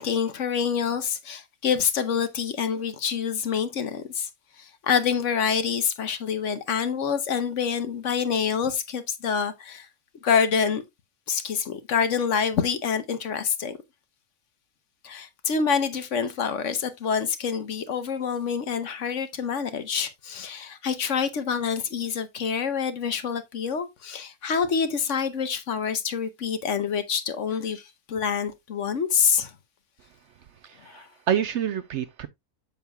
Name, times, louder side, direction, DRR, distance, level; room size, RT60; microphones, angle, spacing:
voice 1, 0.0-4.3 4.6-9.9 10.2-10.8 11.3-13.8 15.0-29.5 30.8-31.1, left 6 dB, 60° left, 1.2 m, -26 dB
voice 2, 30.6-32.3, right 9 dB, 65° right, 0.7 m, -28 dB
7.2 x 7.2 x 2.2 m
omnidirectional pair, 1.5 m